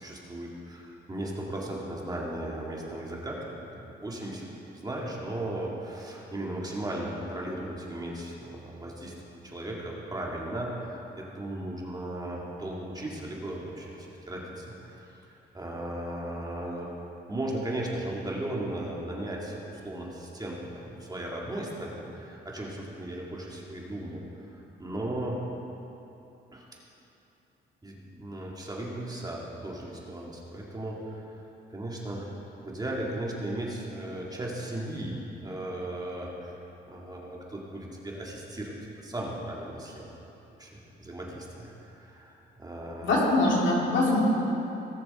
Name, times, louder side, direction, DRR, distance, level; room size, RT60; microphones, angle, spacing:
voice 1, 0.0-4.5 4.7-9.1 9.4-15.0 15.3-16.9 17.3-24.2 24.5-25.4 26.5-26.7 27.8-31.4 31.7-32.3 32.6-36.5 36.9-40.1 40.6-43.3, right 1 dB, 20° right, -3 dB, 2.1 m, -36 dB
voice 2, 43.0-44.2, left 2 dB, 70° left, -4 dB, 2.9 m, -23 dB
18.0 x 6.7 x 4.3 m, 3.0 s
cardioid pair, 90°, 20 cm